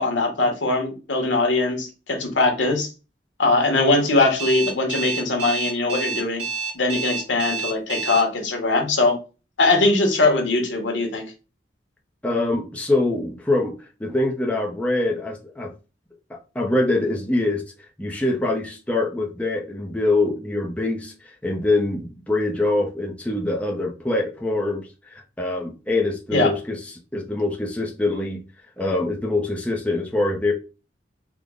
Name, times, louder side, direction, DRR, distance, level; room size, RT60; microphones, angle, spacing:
voice 1, 0.0-2.9 3.4-6.4 6.7-9.2 9.6-11.2 26.3-26.5, left 2 dB, 85° left, 1.0 m, -21 dB
Alarm, 4.4-8.2, right 5 dB, 75° right, 1.2 m, -28 dB
voice 2, 12.2-15.7 16.3-17.7 18.0-28.4 28.8-30.5, left 2 dB, 5° left, 0.5 m, -24 dB
3.5 x 2.0 x 3.6 m
head